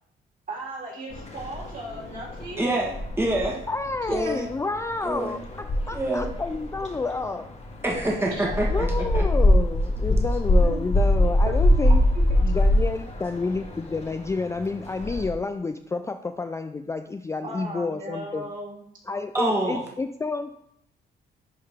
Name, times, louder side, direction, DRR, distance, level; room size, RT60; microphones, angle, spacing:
voice 1, 0.5-2.6 3.4-3.5 8.2-9.0 10.6-10.9 11.8-12.2 17.4-18.8, right 1 dB, 45° right, -3 dB, 2.9 m, -37 dB
sound 1, 1.1-15.3, left 1 dB, 35° left, 1.5 m, -24 dB
voice 2, 2.6-3.6 4.1-4.5 5.0-5.3 5.9-6.3 7.8-9.2 19.3-19.8, right 1 dB, 10° right, -2 dB, 1.4 m, -26 dB
voice 3, 3.7-5.4 5.9-7.5 8.7-12.0 12.4-18.5 19.1-20.5, left 3 dB, 15° left, 8 dB, 0.3 m, -29 dB
11.0 x 3.8 x 3.6 m, 0.73 s
cardioid pair, 90°, 20 cm